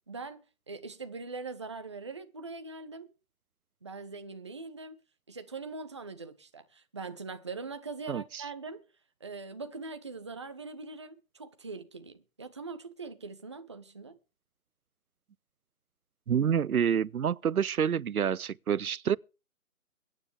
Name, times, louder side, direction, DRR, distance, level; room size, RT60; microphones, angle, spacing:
voice 1, 0.1-3.1 3.8-5.0 5.3-8.8 9.2-14.2, right 4 dB, 20° right, 0.6 m, -42 dB
voice 2, 8.1-8.4 16.3-19.2, right 8 dB, 85° right, 0.6 m, -28 dB
23.0 x 9.5 x 3.4 m
figure-of-eight pair, 150°, 43 cm